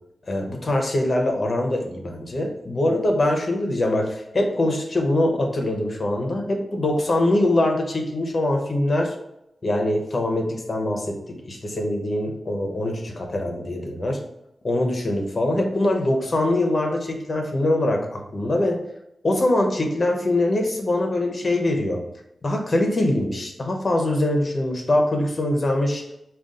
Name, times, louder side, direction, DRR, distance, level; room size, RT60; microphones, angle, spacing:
voice 1, 0.3-9.1 9.6-14.2 14.6-18.8 19.2-22.0 22.4-26.0, left 1 dB, 40° left, 2 dB, 0.8 m, -23 dB
5.1 x 2.4 x 3.7 m, 0.82 s
wide cardioid pair, 140°, 0 cm